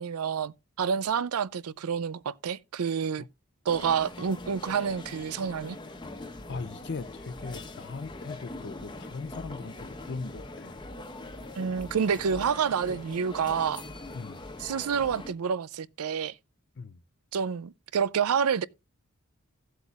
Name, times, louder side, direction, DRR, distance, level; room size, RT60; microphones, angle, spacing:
voice 1, 0.0-3.2 3.7-5.8 11.6-13.8 14.6-16.3 17.3-18.6, right 7 dB, 90° right, 0.5 m, -28 dB
sound 1, 3.7-15.3, left 2 dB, 20° left, 1.0 m, -42 dB
voice 2, 6.5-10.8 14.1-14.4 16.8-17.0, left 4 dB, 50° left, 0.5 m, -39 dB
15.5 x 8.0 x 2.4 m
head